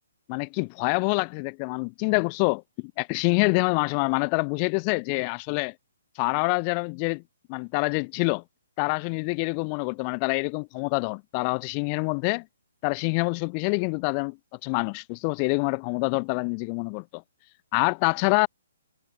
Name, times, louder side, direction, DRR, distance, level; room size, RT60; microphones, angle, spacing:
voice 1, 0.3-5.7 6.2-7.2 7.5-8.4 8.8-12.5 12.8-14.4 14.6-17.2 17.7-18.5, left 40 dB or more, 30° left, 5.6 m, -26 dB
hypercardioid pair, 150°, 0 cm